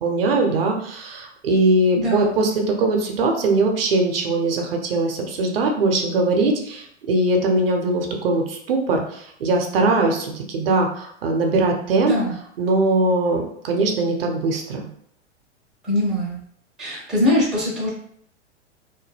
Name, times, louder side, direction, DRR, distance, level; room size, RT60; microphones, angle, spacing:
voice 1, 0.0-12.1 12.6-14.8, right 2 dB, 55° right, 3 dB, 0.6 m, -21 dB
voice 2, 2.0-2.3 12.0-12.3 15.8-16.4 16.8-17.9, left 1 dB, ahead, -7 dB, 0.4 m, -22 dB
2.3 x 2.1 x 3.2 m, 0.66 s
figure-of-eight pair, 100°, 35 cm